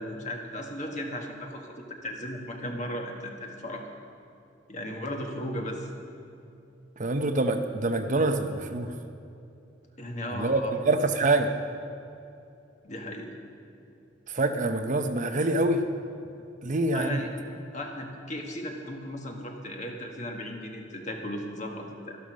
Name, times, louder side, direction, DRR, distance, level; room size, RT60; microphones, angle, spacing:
voice 1, 0.0-3.8 4.7-5.9 10.0-10.7 12.8-13.3 16.9-17.3 17.7-22.2, left 1 dB, 40° left, 2 dB, 1.5 m, -36 dB
voice 2, 7.0-8.9 10.3-11.5 14.3-15.8 16.6-17.2, right 2 dB, 40° right, 7 dB, 0.7 m, -25 dB
12.5 x 11.5 x 6.3 m, 2.6 s
head